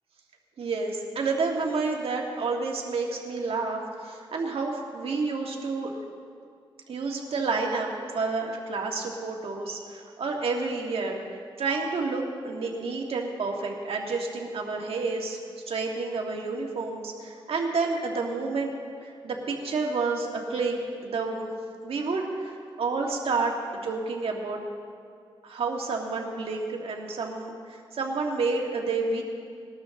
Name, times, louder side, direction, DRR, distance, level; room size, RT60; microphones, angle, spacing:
voice 1, 0.6-6.0 6.9-7.9 8.1-15.4 15.7-18.7 19.0-21.5 21.8-24.6 25.4-29.2, right 4 dB, 80° right, 0 dB, 2.0 m, -30 dB
20.0 x 12.5 x 3.8 m, 2.3 s
wide cardioid pair, 105°, 10 cm